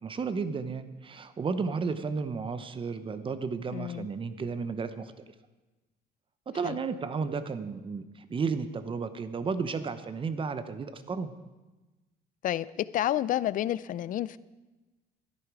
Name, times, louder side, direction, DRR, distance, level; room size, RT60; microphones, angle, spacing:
voice 1, 0.0-5.2 6.5-11.3, right 5 dB, 30° right, 11 dB, 0.9 m, -33 dB
voice 2, 3.7-4.1 6.6-6.8 12.4-14.4, left 12 dB, 55° left, 18 dB, 0.4 m, -30 dB
13.5 x 10.5 x 4.9 m, 1.2 s
cardioid pair, 110°, 17 cm